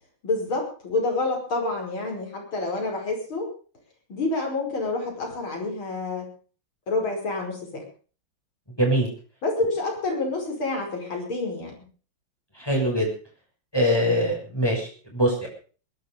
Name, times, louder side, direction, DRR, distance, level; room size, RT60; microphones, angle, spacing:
voice 1, 0.2-3.5 4.1-6.3 6.9-7.8 9.4-11.8, left 3 dB, 80° left, 1 dB, 6.2 m, -28 dB
voice 2, 8.8-9.1 12.5-13.1 13.7-15.5, equal, 10° left, -2 dB, 6.3 m, -23 dB
21.5 x 11.0 x 5.2 m, 0.39 s
omnidirectional pair, 2.2 m